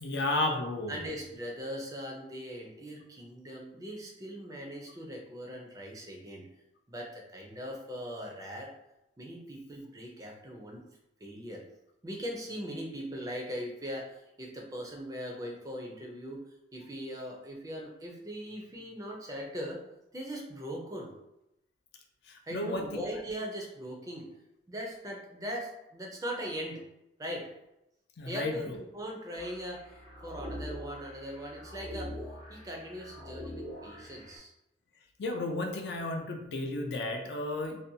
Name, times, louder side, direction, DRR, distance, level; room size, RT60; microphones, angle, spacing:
voice 1, 0.0-1.0 22.5-23.0 28.2-28.5 35.2-37.8, left 2 dB, 65° left, 3 dB, 0.4 m, -32 dB
voice 2, 0.9-6.5 6.9-8.7 9.2-10.8 11.2-11.6 12.0-16.4 16.7-19.8 20.1-21.1 22.4-24.3 24.7-26.8 27.2-27.5 28.3-29.9 30.2-32.2 32.5-34.5, equal, 20° right, 0 dB, 0.4 m, -40 dB
sound 1, 29.4-34.4, equal, 30° left, 0.7 m, -43 dB
2.6 x 2.1 x 2.6 m, 0.87 s
head